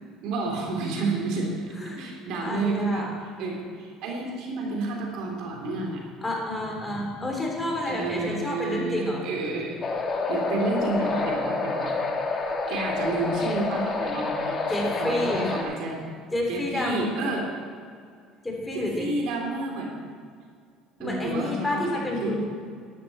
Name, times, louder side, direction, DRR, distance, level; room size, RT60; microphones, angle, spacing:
voice 1, 0.2-1.5 2.0-3.0 3.4-6.0 7.8-9.8 10.2-11.9 12.3-14.6 15.0-16.0 16.5-17.5 18.7-19.9 21.0-22.3, right 3 dB, 70° right, 0 dB, 3.0 m, -30 dB
voice 2, 1.8-2.1 2.4-3.1 6.2-9.2 14.7-15.5 16.3-17.1 18.4-19.1 21.0-22.5, left 1 dB, 15° left, 0 dB, 3.6 m, -29 dB
sound 1, 9.8-15.6, left 3 dB, 35° left, 1.9 m, -28 dB
12.5 x 11.5 x 4.3 m, 2.2 s
supercardioid pair, 85°, 0 cm